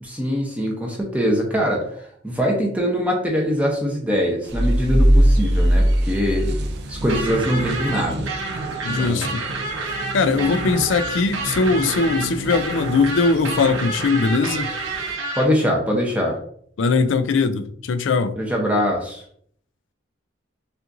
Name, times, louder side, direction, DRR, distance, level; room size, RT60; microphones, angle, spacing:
voice 1, 0.0-1.8 2.2-6.6 6.9-8.3 9.0-9.4 15.4-16.4 18.4-19.2, equal, 5° right, 0.7 m, -22 dB
sound 1, 4.4-15.2, right 2 dB, 55° right, 0.5 m, -34 dB
sound 2, 4.5-7.3, equal, 20° left, 0.9 m, -18 dB
sound 3, 7.1-15.4, right 3 dB, 80° right, 0.8 m, -29 dB
voice 2, 8.8-9.4 10.1-14.7 16.8-18.4, left 4 dB, 70° left, 0.4 m, -20 dB
5.6 x 2.5 x 2.6 m
head